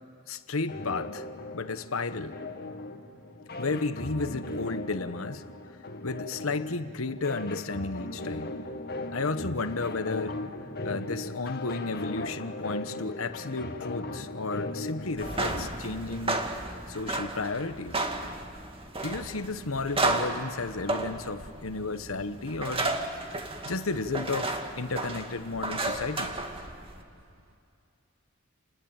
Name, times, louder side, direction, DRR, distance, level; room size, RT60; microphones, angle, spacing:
voice 1, 0.3-1.3 1.5-2.4 3.6-5.4 6.0-8.5 9.1-10.4 10.8-16.5 16.9-18.1 19.0-22.9 23.6-26.4, left 3 dB, 90° left, 11 dB, 1.2 m, -33 dB
sound 1, 0.7-15.7, left 2 dB, 50° left, 1.9 m, -38 dB
sound 2, 15.1-27.0, right 2 dB, 25° right, 2.2 m, -33 dB
voice 2, 26.7-27.6, right 1 dB, 80° right, 7 dB, 2.1 m, -64 dB
29.5 x 21.0 x 9.0 m, 2.4 s
head